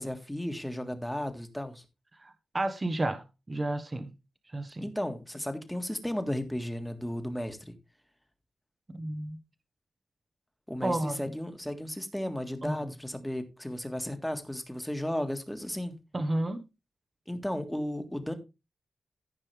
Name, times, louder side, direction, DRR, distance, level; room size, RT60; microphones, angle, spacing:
voice 1, 0.0-1.8 4.8-7.7 10.7-15.9 17.3-18.3, left 1 dB, 5° left, 1.7 m, -34 dB
voice 2, 2.2-4.1 4.5-4.8 8.9-9.4 10.8-11.3 12.6-12.9 16.1-16.6, right 1 dB, 30° right, 1.1 m, -32 dB
14.5 x 5.5 x 3.4 m
cardioid pair, 85°, 0 cm